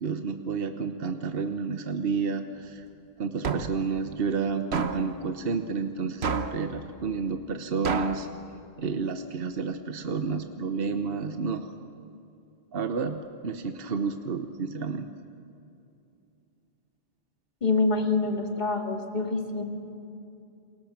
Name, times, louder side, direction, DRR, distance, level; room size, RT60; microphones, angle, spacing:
voice 1, 0.0-2.8 3.2-8.3 8.8-11.7 12.7-15.1, right 5 dB, 65° right, 7 dB, 1.2 m, -30 dB
sound 1, 3.4-3.9 4.7-5.1 6.2-6.7 7.8-8.3, right 5 dB, 85° right, 1.3 m, -29 dB
voice 2, 17.6-19.6, left 3 dB, 45° left, 3 dB, 2.3 m, -26 dB
28.5 x 21.5 x 7.3 m, 2.7 s
omnidirectional pair, 1.1 m